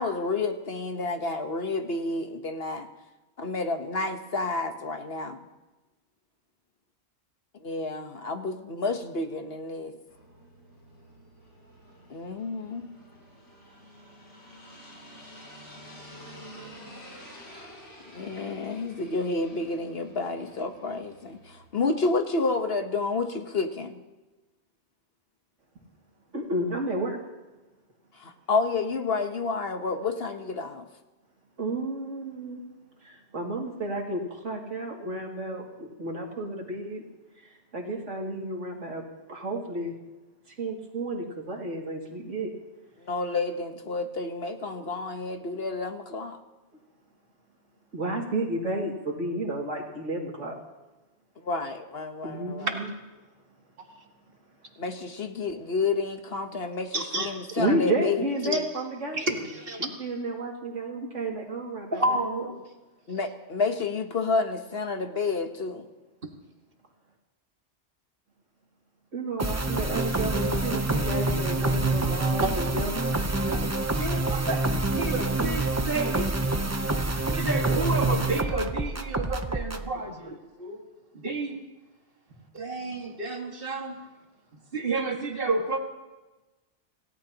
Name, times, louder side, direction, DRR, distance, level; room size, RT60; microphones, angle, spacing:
voice 1, 0.0-2.9 3.4-5.4 7.6-9.9 12.1-12.9 18.1-24.0 28.2-30.8 43.0-46.4 51.4-52.7 54.8-58.6 63.1-65.8, left 3 dB, 55° left, 6 dB, 1.4 m, -30 dB
sound 1, 10.1-21.7, equal, 90° left, 7.6 m, -49 dB
voice 2, 26.3-27.2 31.6-32.6 33.0-37.0 37.7-39.0 39.3-39.9 40.6-42.5 44.8-44.9 47.9-50.6 52.2-52.9 57.6-59.4 59.8-62.0 69.1-73.1 84.0-84.1, right 1 dB, 90° right, -1 dB, 2.8 m, -31 dB
voice 3, 56.9-57.5 58.5-58.6 59.1-59.9 61.9-62.5 72.4-72.5 73.5-76.3 77.3-80.8 81.1-81.6 82.5-84.0 84.7-85.8, right 2 dB, 50° right, 2 dB, 2.1 m, -30 dB
sound 2, 69.4-79.9, right 2 dB, 15° right, 0.6 m, -27 dB
27.5 x 17.0 x 2.9 m, 1.1 s
omnidirectional pair, 1.2 m